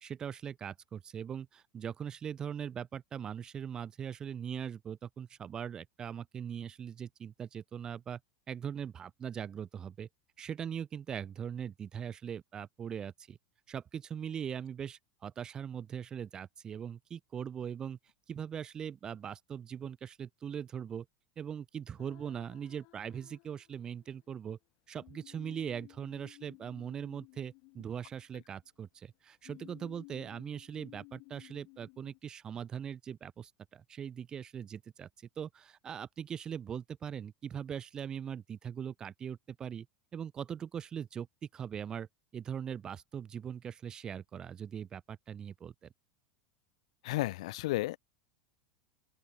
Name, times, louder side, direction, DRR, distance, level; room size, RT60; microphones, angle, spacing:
voice 1, 0.0-8.2 8.5-10.1 10.4-13.4 13.7-18.0 18.3-21.0 21.4-24.6 24.9-35.1 35.4-39.9 40.1-41.3 41.5-42.1 42.3-45.9, right 8 dB, 20° right, 1.5 m, -41 dB
sound 1, 22.0-24.1 25.0-28.7 29.4-32.2, left 32 dB, 50° left, 5.0 m, -56 dB
voice 2, 47.0-48.0, left 18 dB, 70° left, 0.6 m, -33 dB
open air
supercardioid pair, 150°, 3 cm